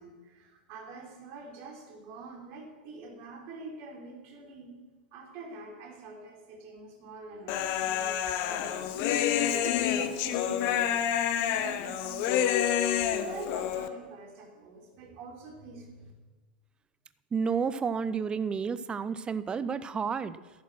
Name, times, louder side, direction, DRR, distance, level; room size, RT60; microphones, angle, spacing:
voice 1, 0.0-4.7 5.1-9.1 9.6-12.5 12.9-16.1, right 4 dB, 40° right, -1 dB, 4.6 m, -45 dB
Human voice, 7.5-13.9, left 10 dB, 40° left, 1.1 m, -28 dB
voice 2, 17.3-20.4, right 6 dB, 15° right, 14 dB, 0.6 m, -31 dB
14.0 x 12.0 x 6.1 m, 1.2 s
figure-of-eight pair, 95°, 5 cm